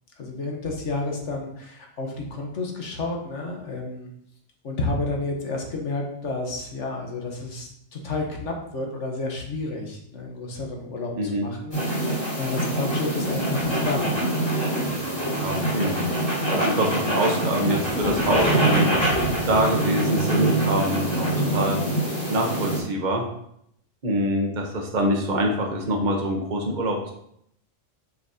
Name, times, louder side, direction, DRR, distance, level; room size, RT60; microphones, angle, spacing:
voice 1, 0.2-4.1 4.6-14.1, left 2 dB, 70° left, 1 dB, 1.4 m, -31 dB
voice 2, 11.1-11.5 15.4-16.0 16.5-18.9 19.5-21.8 22.3-23.2 24.0-27.1, right 1 dB, 40° right, 1 dB, 1.1 m, -25 dB
sound 1, 11.7-22.8, right 1 dB, 20° left, 2.4 m, -24 dB
6.6 x 5.5 x 2.8 m, 0.72 s
omnidirectional pair, 1.3 m